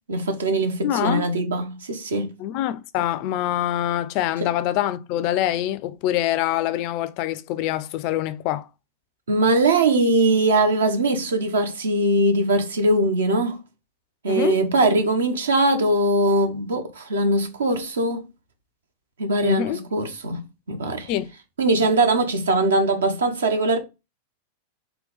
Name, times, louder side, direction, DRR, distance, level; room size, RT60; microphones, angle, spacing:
voice 1, 0.1-2.3 4.4-4.5 9.3-13.6 14.2-18.3 19.2-21.1 21.6-23.8, right 2 dB, 65° right, 0.7 m, -21 dB
voice 2, 0.8-1.3 2.4-8.7 14.3-14.6 19.4-19.8 21.1-21.3, left 12 dB, 45° left, 0.3 m, -25 dB
3.8 x 2.3 x 3.8 m
figure-of-eight pair, 90°, 0 cm